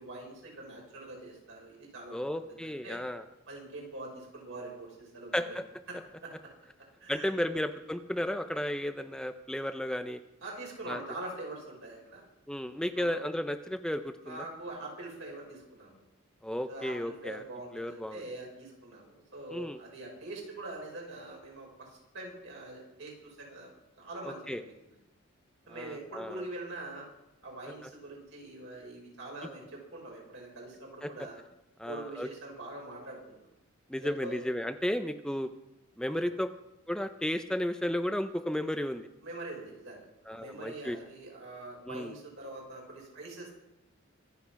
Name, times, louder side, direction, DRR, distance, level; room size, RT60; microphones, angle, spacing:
voice 1, 0.0-3.0 3.5-5.6 5.9-6.5 7.0-7.3 10.4-12.2 12.9-13.3 14.2-16.0 16.7-23.7 24.0-25.0 25.7-27.1 27.4-31.4 31.8-33.4 33.9-34.5 36.1-36.2 39.2-43.6, right 2 dB, 65° right, -1 dB, 5.9 m, -44 dB
voice 2, 2.1-3.2 5.3-5.6 7.1-10.2 10.9-11.0 12.5-14.4 16.4-17.4 17.7-18.2 19.5-19.8 24.2-24.6 25.7-26.4 31.0-31.1 31.8-32.3 33.9-35.5 36.0-36.5 36.9-39.1 40.3-41.0 41.9-42.1, left 1 dB, 5° left, 8 dB, 0.5 m, -33 dB
25.0 x 8.3 x 5.8 m, 0.91 s
head